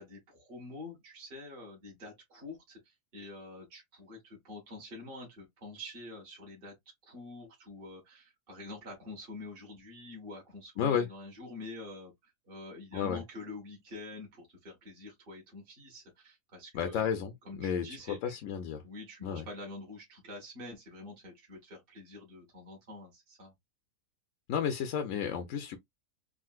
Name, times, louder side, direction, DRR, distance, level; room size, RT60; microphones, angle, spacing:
voice 1, 0.0-6.7 7.1-17.1 17.4-18.4 18.8-23.5, left 2 dB, 35° right, 1.3 m, -47 dB
voice 2, 10.8-11.1 12.9-13.2 16.7-18.8 19.2-19.5 24.5-25.8, left 7 dB, 70° left, 0.8 m, -32 dB
3.8 x 2.4 x 2.3 m
omnidirectional pair, 1.7 m